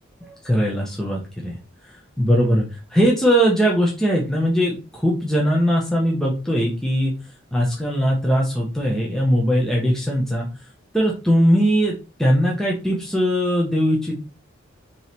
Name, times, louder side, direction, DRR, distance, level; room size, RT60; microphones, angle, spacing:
voice 1, 0.2-1.6 1.9-7.1 7.5-10.5 10.9-11.9 12.2-14.2, equal, ahead, -3 dB, 0.8 m, -20 dB
5.2 x 3.0 x 3.4 m, 0.33 s
head